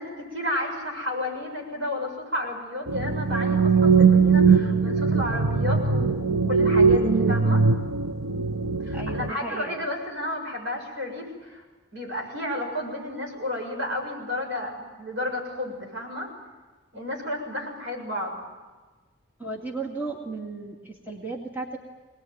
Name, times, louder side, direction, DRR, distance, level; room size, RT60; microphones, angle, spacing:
voice 1, 0.0-7.7 8.9-11.6 11.9-16.3 16.9-18.4, left 1 dB, 65° right, 1 dB, 7.1 m, -32 dB
sound 1, 2.9-9.3, right 5 dB, 85° right, 1.1 m, -20 dB
voice 2, 8.9-9.8 19.4-21.8, right 3 dB, 10° right, -1 dB, 2.1 m, -35 dB
24.0 x 19.5 x 9.3 m, 1.3 s
head